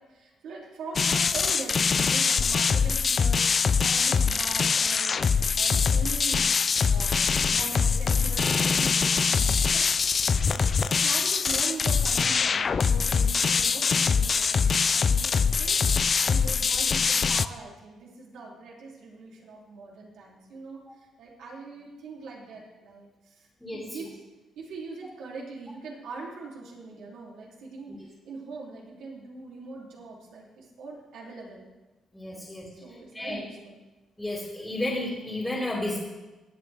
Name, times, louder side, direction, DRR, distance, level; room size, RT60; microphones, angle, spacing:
voice 1, 0.1-6.6 6.9-9.8 10.3-23.5 23.7-24.1 24.6-31.7 32.3-33.8, right 3 dB, 80° right, -3 dB, 3.0 m, -42 dB
sound 1, 1.0-17.5, left 5 dB, 30° left, 0.3 m, -23 dB
voice 2, 23.6-24.0 32.1-32.7 33.1-33.4 34.2-36.0, left 1 dB, 5° left, -6 dB, 2.2 m, -32 dB
17.5 x 8.9 x 3.5 m, 1.1 s
cardioid pair, 160°, 0 cm